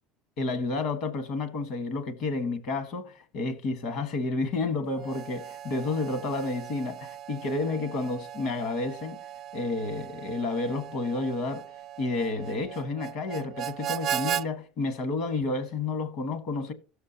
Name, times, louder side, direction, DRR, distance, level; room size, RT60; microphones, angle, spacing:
voice 1, 0.4-9.2 9.5-11.7 12.0-16.7, left 3 dB, 65° left, 1.4 m, -30 dB
Harmonica, 4.9-14.5, right 11 dB, 50° right, 0.3 m, -37 dB
17.0 x 6.6 x 2.8 m
supercardioid pair, 100°, 0 cm